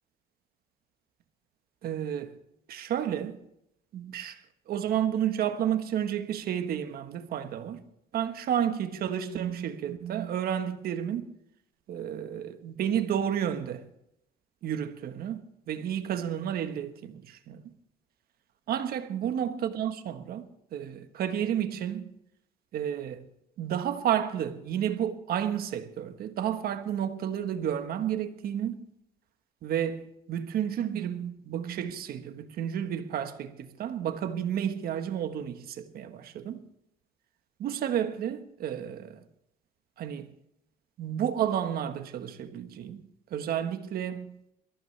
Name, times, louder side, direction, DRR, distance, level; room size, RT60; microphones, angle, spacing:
voice 1, 1.8-2.3 2.7-3.4 3.9-4.4 4.7-7.8 8.1-11.3 11.9-13.8 14.6-15.4 15.7-17.6 18.7-20.4 20.7-22.1 22.7-23.2 23.6-28.8 29.6-36.6 37.6-39.2 40.0-40.3 41.0-43.0 43.3-44.3, right 9 dB, 65° right, 1.4 m, -31 dB
23.0 x 14.0 x 3.4 m
cardioid pair, 110°, 17 cm